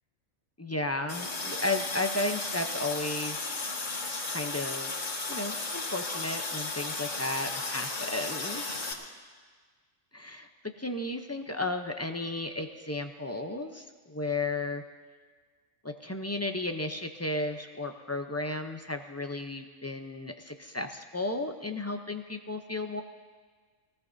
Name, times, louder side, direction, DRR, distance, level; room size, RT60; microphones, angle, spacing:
voice 1, 0.6-3.5 4.3-4.9 5.3-8.6 10.1-10.5 10.8-14.8 15.8-23.0, left 2 dB, 25° left, 5 dB, 0.3 m, -34 dB
Water tap faucet, 1.1-8.9, left 3 dB, 70° left, 3.2 m, -34 dB
22.5 x 18.5 x 2.7 m, 1.5 s
omnidirectional pair, 1.4 m